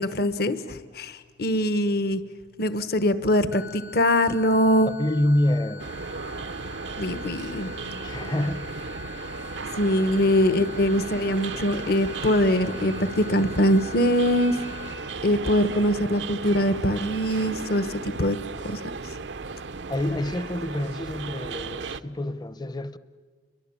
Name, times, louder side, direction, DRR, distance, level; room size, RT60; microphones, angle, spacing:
voice 1, 0.0-2.2 2.6-4.9 7.0-7.7 9.8-14.6 15.2-18.4 18.6-18.8, equal, 55° left, 1.1 m, -23 dB
sound 1, 3.5-14.9, left 5 dB, 75° left, 3.1 m, -44 dB
voice 2, 4.8-5.9 8.0-8.8 19.9-23.0, left 1 dB, 25° left, 0.8 m, -27 dB
sound 2, 5.8-22.0, right 4 dB, 75° right, 0.7 m, -35 dB
30.0 x 23.0 x 8.7 m
head